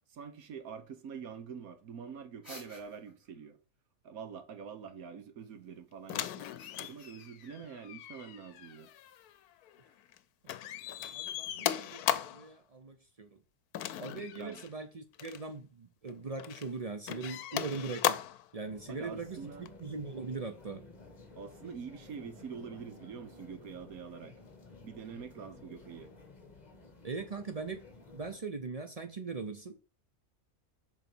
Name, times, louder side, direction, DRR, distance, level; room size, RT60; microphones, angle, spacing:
voice 1, 0.1-3.6 4.0-6.5 6.8-8.9 14.4-14.6 18.9-19.7 21.4-24.3 24.8-26.1, right 6 dB, 70° right, 1.4 m, -45 dB
sound 1, 2.4-3.3 6.1-7.5, left 1 dB, ahead, 3.6 m, -53 dB
sound 2, 6.1-10.2 10.5-12.5 13.7-14.7 15.1-15.4 16.1-16.7 17.1-18.5 19.7-19.8, left 12 dB, 80° left, 1.1 m, -37 dB
voice 2, 11.1-13.4 14.0-18.2 18.5-20.8 27.0-29.8, right 4 dB, 50° right, 0.4 m, -40 dB
sound 3, 18.6-28.4, left 3 dB, 30° left, 1.3 m, -54 dB
6.7 x 4.2 x 6.0 m
omnidirectional pair, 1.6 m